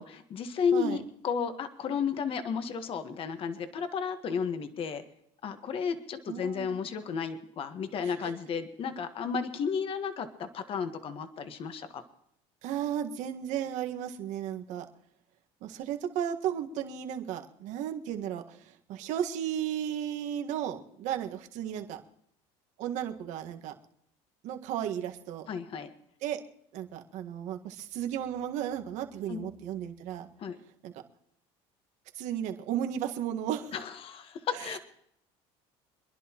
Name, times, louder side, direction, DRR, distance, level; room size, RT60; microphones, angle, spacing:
voice 1, 0.0-5.0 5.4-12.0 25.5-25.9 29.3-29.5 30.4-30.6 33.7-34.8, left 6 dB, 45° left, 8 dB, 1.5 m, -33 dB
voice 2, 6.3-6.8 8.0-8.3 12.6-14.8 15.6-18.6 18.9-22.0 22.8-23.7 24.4-25.4 26.2-26.4 26.7-30.3 30.8-30.9 32.2-33.7 34.5-34.8, right 10 dB, 70° right, 5 dB, 1.7 m, -34 dB
26.0 x 11.0 x 3.0 m, 0.72 s
cardioid pair, 115°, 13 cm